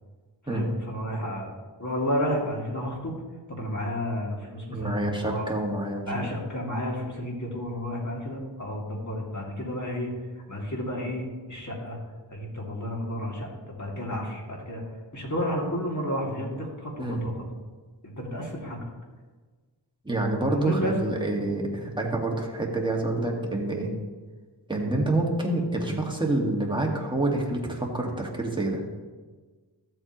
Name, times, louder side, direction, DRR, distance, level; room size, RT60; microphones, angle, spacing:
voice 1, 0.5-1.5 1.8-3.1 3.5-5.5 6.1-10.1 10.5-12.0 12.3-14.8 15.1-17.3 18.0-18.8 20.5-20.9, equal, 40° left, -2 dB, 2.6 m, -31 dB
voice 2, 4.7-6.3 17.0-17.3 20.0-23.9 24.7-28.8, right 2 dB, 10° right, 0 dB, 1.8 m, -27 dB
13.5 x 7.8 x 3.1 m, 1.4 s
wide cardioid pair, 65°, 44 cm